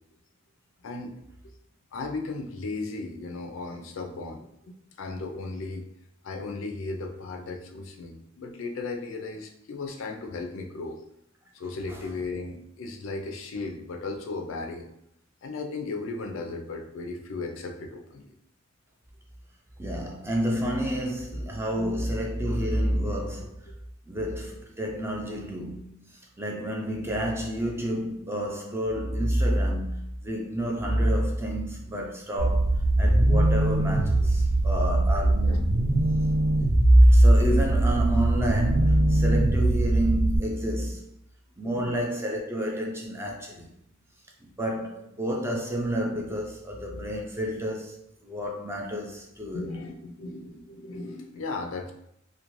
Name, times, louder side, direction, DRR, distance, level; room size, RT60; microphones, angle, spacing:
voice 1, 0.8-1.2 1.9-5.8 6.2-11.0 11.5-14.9 15.4-18.3 34.7-34.9 35.5-35.6 41.6-42.1 49.5-51.9, left 3 dB, 65° left, 0.4 m, -36 dB
voice 2, 19.8-23.6 24.1-32.7 33.0-35.7 36.6-41.0 41.6-43.7 44.4-49.7, equal, 10° right, 0.3 m, -26 dB
sound 1, 32.4-40.4, right 2 dB, 65° right, 0.5 m, -23 dB
2.5 x 2.2 x 2.9 m
head